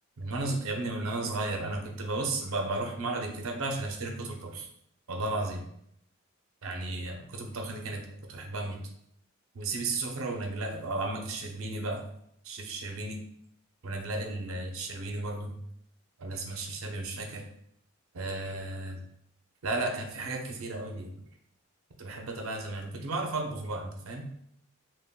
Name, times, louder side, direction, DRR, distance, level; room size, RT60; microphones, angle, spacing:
voice 1, 0.2-4.7 5.1-5.6 6.6-8.8 9.5-12.0 12.4-13.2 13.8-15.5 16.2-17.4 18.1-19.0 19.6-21.1 22.0-24.3, right 2 dB, 75° right, 3 dB, 0.5 m, -34 dB
3.5 x 2.2 x 2.2 m, 0.72 s
head